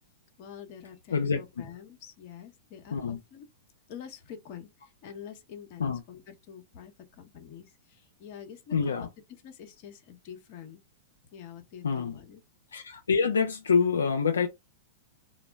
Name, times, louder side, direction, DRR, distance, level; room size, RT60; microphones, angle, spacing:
voice 1, 0.4-3.5 3.9-9.1 9.4-10.8 11.3-12.4, left 8 dB, 50° left, 0.8 m, -46 dB
voice 2, 8.7-9.1 11.8-12.2 12.7-14.5, left 5 dB, 80° left, 0.4 m, -26 dB
2.2 x 2.0 x 3.5 m
hypercardioid pair, 105°, 0 cm